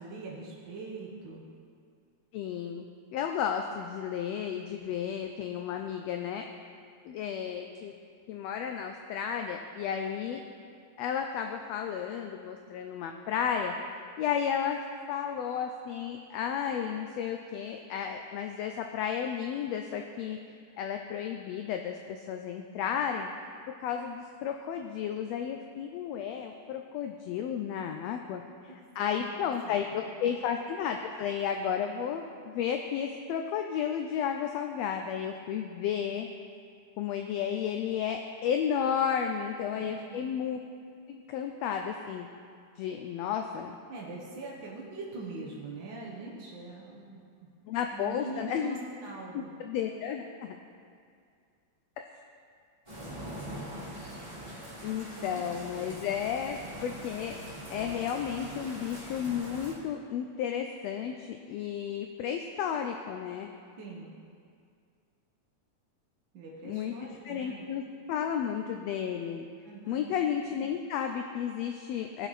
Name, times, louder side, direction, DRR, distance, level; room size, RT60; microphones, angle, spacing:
voice 1, 0.0-1.5 28.7-29.4 29.6-30.2 39.7-40.3 43.9-47.2 47.9-49.5 53.4-54.2 55.1-55.4 55.7-55.9 63.8-64.1 66.3-67.7 69.6-70.1, right 3 dB, 55° right, -4 dB, 1.4 m, -43 dB
voice 2, 2.3-2.8 3.1-6.4 7.0-7.9 8.3-10.4 11.0-13.7 14.2-20.4 20.8-23.3 23.7-36.3 37.0-40.6 41.1-42.3 42.8-43.8 47.7-48.8 49.3-50.6 54.8-57.4 57.7-63.5 66.6-67.8 68.1-69.4 69.9-72.3, left 8 dB, 80° left, 4 dB, 1.5 m, -33 dB
sound 1, 52.9-59.7, right 1 dB, 15° right, 1.2 m, -43 dB
17.0 x 6.0 x 4.1 m, 2.3 s
omnidirectional pair, 3.3 m